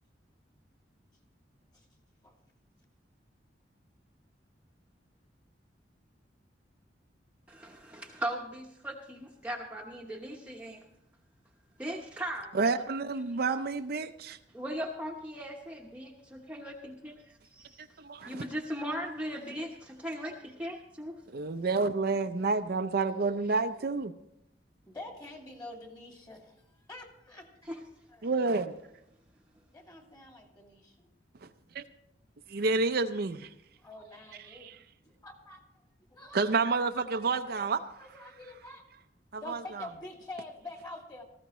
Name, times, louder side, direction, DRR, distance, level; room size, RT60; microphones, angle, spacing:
voice 1, 7.5-10.8 11.8-12.6 14.5-17.8 18.3-21.2 27.7-27.8, equal, 10° right, 1.0 m, -38 dB
voice 2, 12.5-14.4 17.8-18.4 21.3-24.1 28.2-28.7 31.4-31.5 31.7-31.8 32.5-33.5 34.4-34.8 36.3-37.8 39.3-39.9, right 4 dB, 60° right, 0.6 m, -29 dB
voice 3, 24.8-26.5 26.9-27.5 28.1-28.3 29.6-31.1 33.8-34.7 35.0-35.6 36.1-36.4 37.2-37.7 38.0-38.8 39.4-41.2, left 2 dB, 25° left, 2.4 m, -46 dB
18.0 x 14.5 x 3.1 m
head